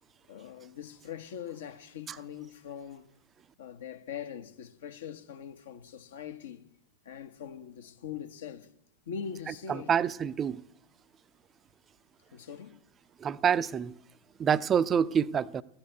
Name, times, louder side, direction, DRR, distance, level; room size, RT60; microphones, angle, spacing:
voice 1, 0.3-3.1 3.6-6.7 7.0-8.7 9.1-10.0 12.3-12.8, left 8 dB, 60° left, 1.2 m, -42 dB
voice 2, 9.9-10.6 13.2-13.9 14.4-15.6, right 7 dB, 25° right, 0.5 m, -26 dB
15.0 x 10.5 x 8.0 m
figure-of-eight pair, 90°, 0 cm